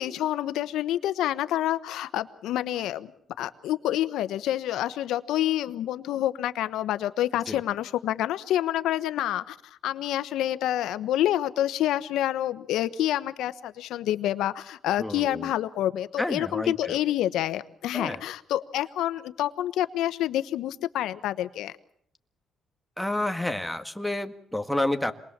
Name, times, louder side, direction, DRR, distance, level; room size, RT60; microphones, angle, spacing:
voice 1, 0.0-3.1 3.4-9.6 9.8-21.7, left 12 dB, 85° left, 12 dB, 1.1 m, -28 dB
voice 2, 15.0-15.5 16.2-17.0 17.9-18.2 23.0-25.1, left 1 dB, 5° left, 8 dB, 1.8 m, -30 dB
27.0 x 21.0 x 7.4 m, 0.66 s
cardioid pair, 90°, 0 cm